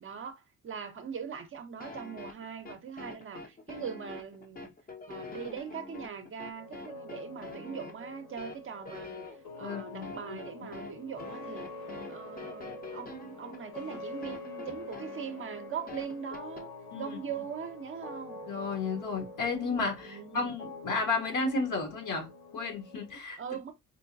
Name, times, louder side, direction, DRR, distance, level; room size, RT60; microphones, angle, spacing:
voice 1, 0.0-4.7 5.1-9.3 9.6-11.7 12.1-16.7 16.9-18.4 20.0-20.5 23.4-23.7, right 7 dB, 35° right, 0.7 m, -41 dB
sound 1, 1.8-16.6, left 3 dB, 25° left, 0.7 m, -45 dB
sound 2, 6.5-23.2, left 2 dB, 85° left, 2.5 m, -46 dB
voice 2, 9.6-10.4 16.9-17.4 18.5-23.4, left 3 dB, 60° left, 1.3 m, -33 dB
4.6 x 2.1 x 2.6 m
cardioid pair, 90°, 35 cm